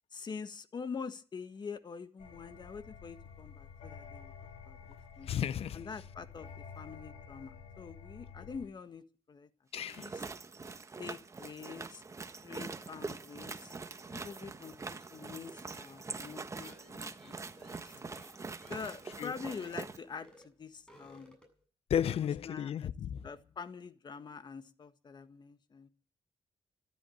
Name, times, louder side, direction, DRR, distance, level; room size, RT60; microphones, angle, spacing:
voice 1, 0.1-4.3 4.6-4.8 5.2-5.3 5.7-9.5 9.9-10.2 11.0-12.0 12.4-13.7 14.1-18.1 18.7-21.4 22.1-22.9 23.2-25.9, left 5 dB, 40° left, 1.6 m, -45 dB
sound 1, 2.2-8.7, left 6 dB, 85° left, 7.0 m, -50 dB
voice 2, 5.3-5.8 9.7-10.1 19.2-19.3 21.9-23.3, left 9 dB, 65° left, 0.7 m, -33 dB
sound 2, 9.8-20.0, right 4 dB, 30° right, 1.4 m, -44 dB
sound 3, 15.8-20.0 20.2-20.5 20.8-21.6, equal, 10° left, 7.9 m, -59 dB
13.5 x 11.0 x 9.3 m
cardioid pair, 100°, 11 cm